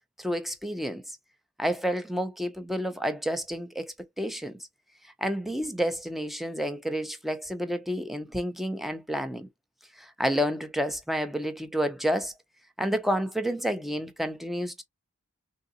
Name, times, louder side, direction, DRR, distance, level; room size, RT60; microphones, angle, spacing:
voice 1, 0.2-1.0 1.6-4.5 5.2-9.5 10.0-12.3 12.8-14.8, equal, ahead, 0.5 m, -30 dB
3.8 x 2.7 x 2.5 m
head